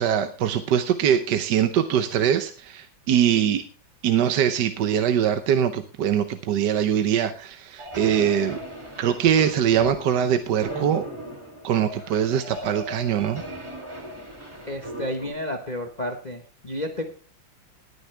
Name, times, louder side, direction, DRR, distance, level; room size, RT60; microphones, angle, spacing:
voice 1, 0.0-3.6 4.0-8.6 9.0-11.1 11.6-13.4, right 9 dB, 65° right, 9 dB, 1.3 m, -22 dB
sound 1, 7.8-15.3, right 1 dB, 15° right, 2.4 m, -37 dB
voice 2, 14.7-17.0, left 1 dB, 25° left, 4 dB, 1.1 m, -31 dB
19.0 x 9.5 x 3.4 m, 0.35 s
omnidirectional pair, 2.2 m